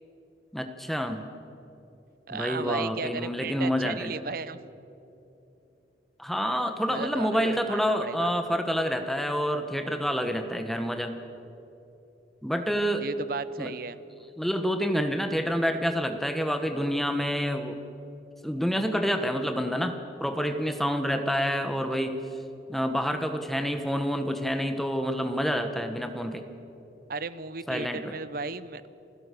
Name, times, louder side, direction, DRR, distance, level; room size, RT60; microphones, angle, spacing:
voice 1, 0.5-1.3 2.3-4.1 6.2-11.1 12.4-13.0 13.6-13.7 14.4-17.8 18.4-22.2 22.7-26.4 27.7-28.1, equal, ahead, 6 dB, 1.3 m, -28 dB
voice 2, 2.3-4.6 6.9-8.3 13.0-14.0 27.1-28.8, right 4 dB, 55° right, 15 dB, 0.7 m, -35 dB
28.0 x 16.5 x 6.8 m, 2.9 s
head